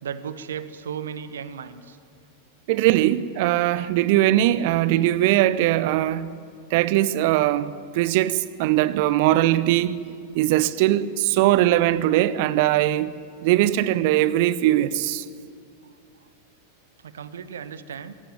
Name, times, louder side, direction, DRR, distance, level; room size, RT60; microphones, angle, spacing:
voice 1, 0.0-2.0 17.0-18.1, right 7 dB, 65° right, 1.3 m, -35 dB
voice 2, 2.7-6.3 6.7-10.0 10.3-13.1 13.4-15.2, right 14 dB, 50° right, 1.0 m, -20 dB
26.0 x 18.0 x 9.0 m
figure-of-eight pair, 90°, 0 cm